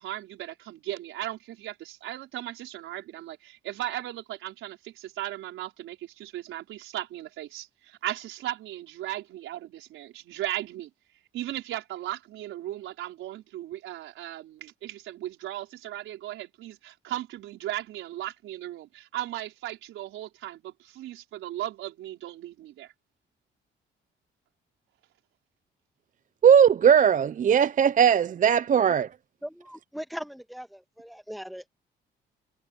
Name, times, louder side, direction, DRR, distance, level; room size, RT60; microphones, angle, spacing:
voice 1, 0.0-10.9 11.3-22.9, right 14 dB, 85° right, 5.0 m, -37 dB
voice 2, 26.4-29.1, right 8 dB, 40° right, 0.5 m, -19 dB
voice 3, 29.4-31.7, equal, ahead, 1.6 m, -39 dB
cardioid pair, 90°, 20 cm